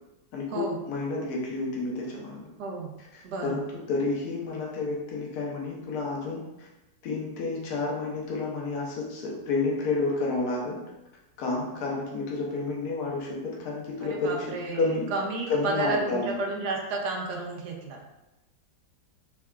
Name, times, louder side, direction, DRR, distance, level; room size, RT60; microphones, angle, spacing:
voice 1, 0.3-2.4 3.1-6.7 7.0-10.8 11.4-14.5 14.7-15.1 15.5-16.3, left 3 dB, 65° left, -3 dB, 1.3 m, -30 dB
voice 2, 2.6-2.9 3.2-3.6 14.0-18.1, right 3 dB, 70° right, 0 dB, 1.1 m, -32 dB
3.6 x 3.3 x 2.3 m, 0.99 s
omnidirectional pair, 1.9 m